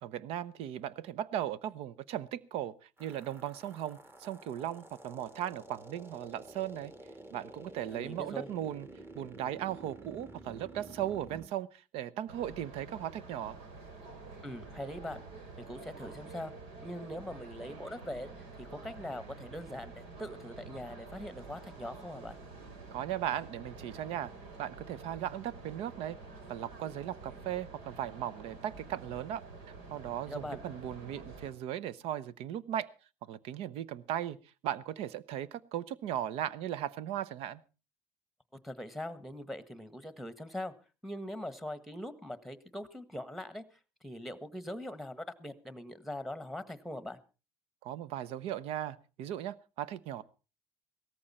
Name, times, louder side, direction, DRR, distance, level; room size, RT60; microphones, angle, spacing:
voice 1, 0.0-6.9 7.3-8.9 9.1-13.6 22.9-24.3 24.6-26.2 26.5-29.4 29.9-32.9 33.2-37.6 47.8-50.2, right 11 dB, 75° right, 20 dB, 0.8 m, -37 dB
sound 1, 3.0-11.5, right 2 dB, 20° right, 2.0 m, -50 dB
voice 2, 7.9-8.5 14.4-15.2 15.6-16.5 16.8-18.3 18.6-22.4 30.3-30.6 38.6-40.7 41.0-43.6 44.0-47.2, left 1 dB, ahead, 13 dB, 1.4 m, -42 dB
sound 2, 12.3-31.5, right 3 dB, 90° right, 3.8 m, -49 dB
17.5 x 14.0 x 4.3 m, 0.34 s
cardioid pair, 115°, 10 cm